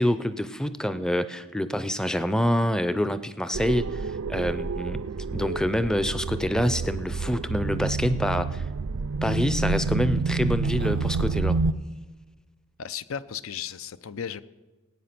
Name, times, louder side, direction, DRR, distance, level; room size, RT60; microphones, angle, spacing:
voice 1, 0.0-5.0 5.3-8.6 9.2-11.6, equal, 5° left, 13 dB, 0.4 m, -26 dB
sound 1, 3.5-11.7, right 4 dB, 90° right, 0.5 m, -28 dB
voice 2, 12.8-14.4, left 8 dB, 85° left, 15 dB, 0.6 m, -35 dB
18.0 x 8.8 x 5.9 m, 1.2 s
head